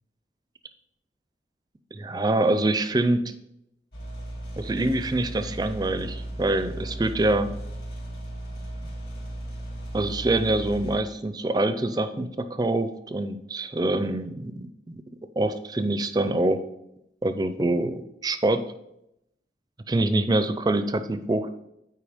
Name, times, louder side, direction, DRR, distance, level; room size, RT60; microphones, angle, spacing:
voice 1, 1.9-3.2 4.6-7.5 9.9-15.0 15.4-16.6 17.2-18.6 19.9-21.5, right 2 dB, 20° right, 10 dB, 0.4 m, -25 dB
sound 1, 3.9-11.0, right 1 dB, 60° left, 2.5 m, -36 dB
8.5 x 4.6 x 4.9 m, 0.84 s
head